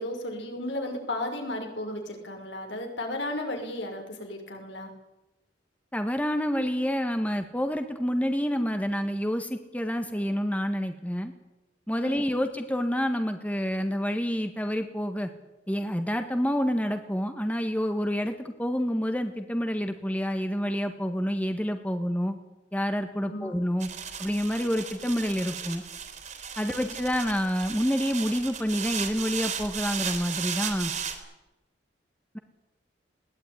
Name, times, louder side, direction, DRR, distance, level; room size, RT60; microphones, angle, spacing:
voice 1, 0.0-4.9 12.0-12.2 23.3-23.5 26.6-26.9, left 1 dB, 80° left, 3 dB, 5.9 m, -34 dB
voice 2, 5.9-11.3 11.9-15.3 15.7-22.4 22.7-23.9 24.2-25.8 26.6-30.9 32.3-32.4, equal, 10° left, 7 dB, 1.6 m, -28 dB
sound 1, 23.8-31.1, right 7 dB, 40° right, 3.7 m, -35 dB
21.0 x 18.0 x 9.9 m, 1.0 s
head